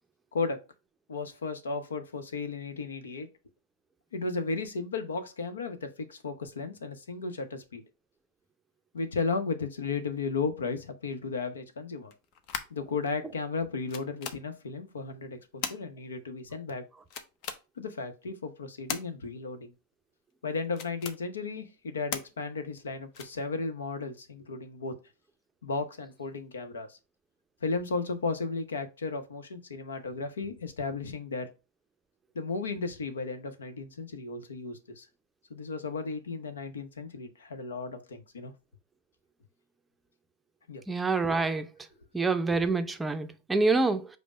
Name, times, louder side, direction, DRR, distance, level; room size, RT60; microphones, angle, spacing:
voice 1, 0.3-0.6 1.1-3.3 4.1-7.8 8.9-12.1 12.7-16.8 17.8-19.7 20.4-24.9 25.6-27.0 27.6-31.5 32.3-35.0 35.5-38.5 40.7-40.8, left 4 dB, 90° left, 0.7 m, -34 dB
sound 1, 12.1-12.9 13.6-13.7 13.9-14.4 15.6-15.8 17.1-17.6 18.9-19.0 20.6-21.2 22.1-22.3 23.1-23.4, left 7 dB, 50° left, 0.7 m, -36 dB
voice 2, 40.9-41.7 42.1-44.1, right 3 dB, 10° right, 0.5 m, -26 dB
5.1 x 2.1 x 4.8 m
hypercardioid pair, 105°, 0 cm